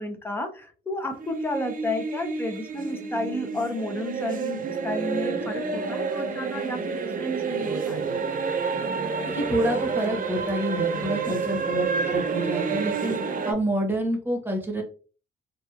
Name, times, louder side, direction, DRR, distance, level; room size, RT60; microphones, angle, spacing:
voice 1, 0.0-8.3 11.3-11.6, left 1 dB, 10° left, 5 dB, 0.6 m, -32 dB
sound 1, 1.1-13.5, right 5 dB, 45° right, 0.6 m, -29 dB
voice 2, 9.3-13.2 13.5-14.8, right 1 dB, 10° right, 1 dB, 1.0 m, -28 dB
2.9 x 2.3 x 2.4 m, 0.37 s
cardioid pair, 90°, 20 cm